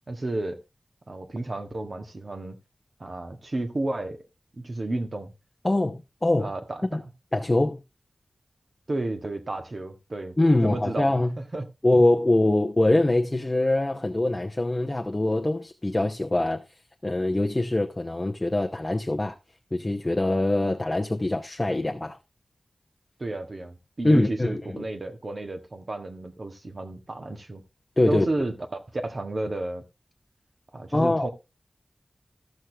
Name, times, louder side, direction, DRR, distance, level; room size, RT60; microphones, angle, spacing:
voice 1, 0.1-0.6 1.1-2.6 3.0-4.2 4.6-5.3 6.4-6.9 8.9-11.1 11.5-11.7 23.2-27.6 28.1-28.5 28.9-29.8 30.7-31.3, right 2 dB, 50° right, 1.7 m, -32 dB
voice 2, 5.6-6.5 6.9-7.0 7.3-7.8 10.4-11.4 11.8-16.6 17.0-19.4 19.7-22.2 24.0-24.9 28.0-28.3 30.9-31.3, left 2 dB, 20° left, 0.8 m, -23 dB
14.5 x 6.4 x 3.4 m
wide cardioid pair, 90°, 0 cm